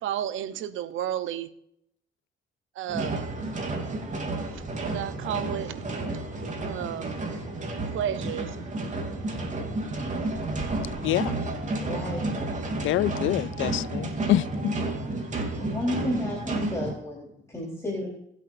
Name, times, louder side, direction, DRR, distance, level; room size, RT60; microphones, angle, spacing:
voice 1, 0.0-1.5 2.7-3.3 4.5-5.8 6.6-7.2 7.9-8.6, right 10 dB, 80° right, 0.9 m, -32 dB
sound 1, 2.9-16.9, right 2 dB, 40° right, 3.2 m, -31 dB
voice 2, 11.0-11.3 12.8-14.8, left 15 dB, 80° left, 0.4 m, -26 dB
voice 3, 11.8-12.5 15.6-18.1, left 1 dB, 15° left, 4.1 m, -32 dB
22.5 x 8.2 x 2.7 m
cardioid pair, 90°, 20 cm